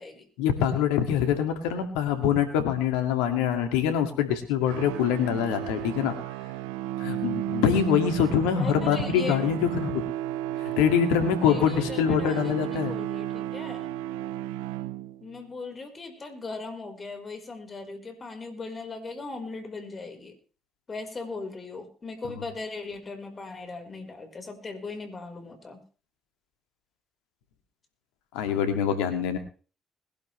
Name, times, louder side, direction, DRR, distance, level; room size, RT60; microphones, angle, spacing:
voice 1, 0.4-6.1 7.0-10.0 10.6-13.0 28.3-29.4, left 8 dB, 80° left, 7 dB, 2.3 m, -24 dB
sound 1, 4.6-15.4, right 14 dB, 85° right, 0.6 m, -33 dB
voice 2, 8.5-9.4 11.4-13.8 15.2-20.3 20.9-25.8, left 3 dB, 40° left, 5 dB, 4.8 m, -38 dB
21.5 x 12.0 x 3.3 m, 0.38 s
hypercardioid pair, 50°, 0 cm